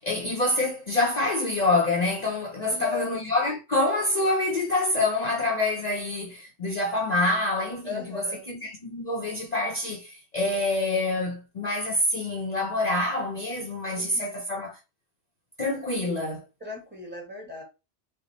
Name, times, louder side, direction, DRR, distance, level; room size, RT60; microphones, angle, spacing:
voice 1, 0.0-14.8 15.6-16.4, left 2 dB, 45° left, 0.8 m, -26 dB
voice 2, 2.6-3.1 7.8-8.5 13.9-14.4 16.6-17.6, left 5 dB, 10° right, 1.2 m, -36 dB
3.4 x 2.2 x 3.9 m
omnidirectional pair, 1.1 m